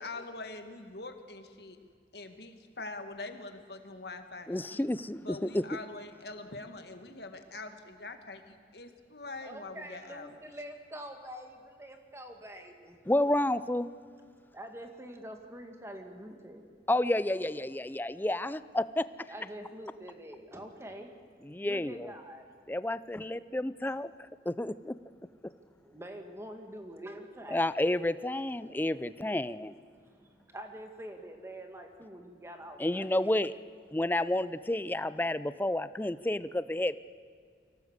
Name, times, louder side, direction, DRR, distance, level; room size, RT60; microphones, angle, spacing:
voice 1, 0.0-1.8 2.1-4.8 5.2-10.4, left 3 dB, 65° left, 7 dB, 1.8 m, -44 dB
voice 2, 4.5-5.6 13.1-13.9 16.9-19.0 21.5-22.1 22.7-24.1 24.5-24.9 27.5-29.7 32.8-33.5 33.9-37.0, left 1 dB, 10° left, 15 dB, 0.5 m, -30 dB
voice 3, 9.4-13.0 14.5-16.6 19.3-21.1 21.7-22.5 25.8-27.7 29.9-33.5, equal, 15° right, 4 dB, 2.0 m, -46 dB
24.0 x 17.5 x 8.1 m, 2.2 s
head